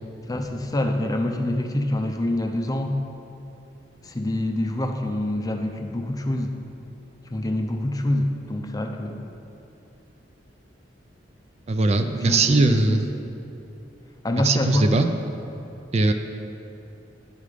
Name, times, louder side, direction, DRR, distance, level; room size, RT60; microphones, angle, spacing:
voice 1, 0.3-3.0 4.0-6.5 7.3-9.2 12.1-13.2 14.2-14.9, left 1 dB, 20° left, 4 dB, 0.5 m, -26 dB
voice 2, 11.7-13.1 14.3-15.1 15.9-16.1, right 3 dB, 35° right, 7 dB, 0.4 m, -20 dB
10.5 x 5.3 x 4.9 m, 2.9 s
head